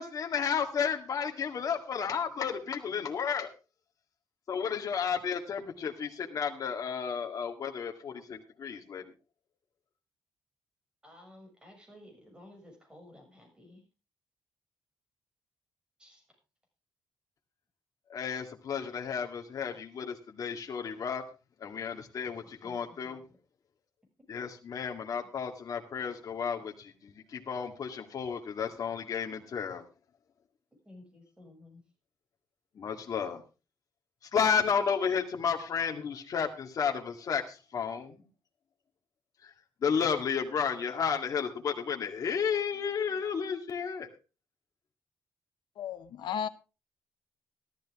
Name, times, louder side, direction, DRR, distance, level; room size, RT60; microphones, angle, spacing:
voice 1, 0.0-3.5 4.5-9.0 18.1-21.2 21.6-23.2 24.3-29.8 32.8-33.4 34.3-38.2 39.4-39.5 39.8-44.1, left 6 dB, 50° left, 2.1 m, -32 dB
voice 2, 11.0-13.8 16.0-16.2 22.6-23.4 30.8-31.8, left 1 dB, 10° right, 6.8 m, -54 dB
voice 3, 45.8-46.5, left 8 dB, 85° left, 0.9 m, -34 dB
13.5 x 13.5 x 3.6 m
cardioid pair, 135°, 8 cm